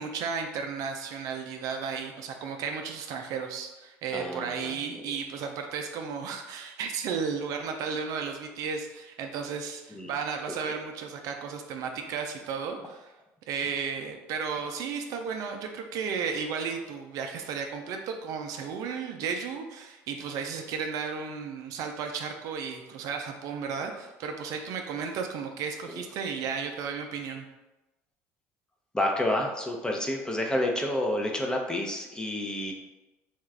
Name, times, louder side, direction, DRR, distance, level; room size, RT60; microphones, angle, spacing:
voice 1, 0.0-13.1 13.5-27.5, right 6 dB, 65° right, 4 dB, 0.4 m, -34 dB
voice 2, 4.1-5.1 9.9-10.1 25.9-26.0 28.9-32.7, left 1 dB, 10° left, 1 dB, 0.7 m, -29 dB
3.5 x 2.4 x 3.3 m, 1.0 s
supercardioid pair, 85°, 6 cm